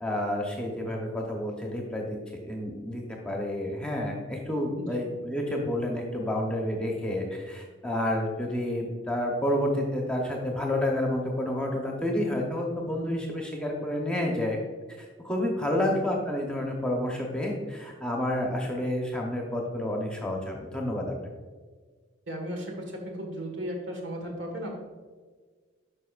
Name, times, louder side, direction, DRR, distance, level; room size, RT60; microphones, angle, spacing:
voice 1, 0.0-2.2 2.4-14.6 15.0-21.1, left 1 dB, 5° left, -1 dB, 0.9 m, -29 dB
voice 2, 22.3-24.8, equal, 65° right, 1 dB, 1.6 m, -36 dB
9.6 x 5.6 x 2.4 m, 1.5 s
head